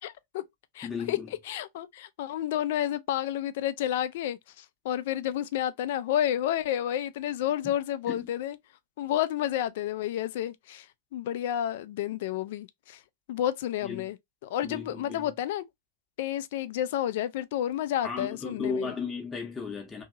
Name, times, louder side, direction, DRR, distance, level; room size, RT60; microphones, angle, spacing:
voice 1, 0.0-0.4 0.7-1.2 1.5-8.6 9.0-10.9 11.1-13.0 13.3-14.2 14.4-15.6 16.2-18.9, left 11 dB, 55° left, 0.3 m, -30 dB
voice 2, 0.8-1.3 7.6-7.7 8.1-8.3 13.8-14.1 14.6-15.3 18.0-20.0, left 5 dB, 15° left, 0.7 m, -35 dB
2.7 x 2.7 x 2.4 m
figure-of-eight pair, 90°, 0 cm